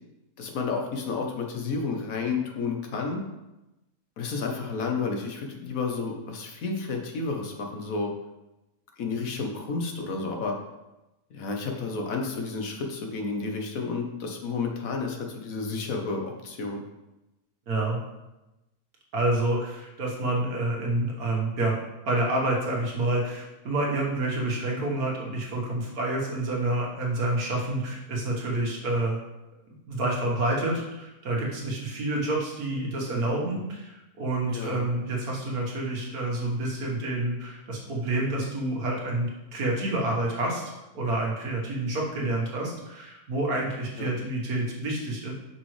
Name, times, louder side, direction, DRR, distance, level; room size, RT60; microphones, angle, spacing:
voice 1, 0.4-3.2 4.2-8.1 9.0-10.6 11.3-16.8 34.5-34.9 44.0-44.1, left 4 dB, 65° left, 2 dB, 1.3 m, -31 dB
voice 2, 17.7-18.0 19.1-21.8 22.0-29.2 29.9-45.3, right 2 dB, 80° right, -2 dB, 1.8 m, -28 dB
6.1 x 5.4 x 3.2 m, 0.98 s
omnidirectional pair, 1.6 m